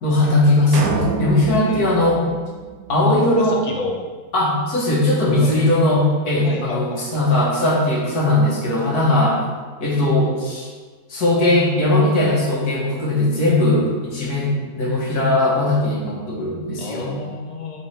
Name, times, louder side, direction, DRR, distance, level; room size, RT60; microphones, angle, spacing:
voice 1, 0.0-2.2 2.9-3.6 4.3-9.4 9.8-10.7 11.1-17.1, left 1 dB, 80° left, -5 dB, 2.1 m, -19 dB
sound 1, 0.7-3.3, right 5 dB, 75° right, 1.1 m, -27 dB
voice 2, 1.7-2.1 3.1-4.0 5.4-5.6 6.4-7.0 16.8-17.8, left 3 dB, 40° left, 1 dB, 0.6 m, -30 dB
7.1 x 4.5 x 3.4 m, 1.5 s
omnidirectional pair, 1.6 m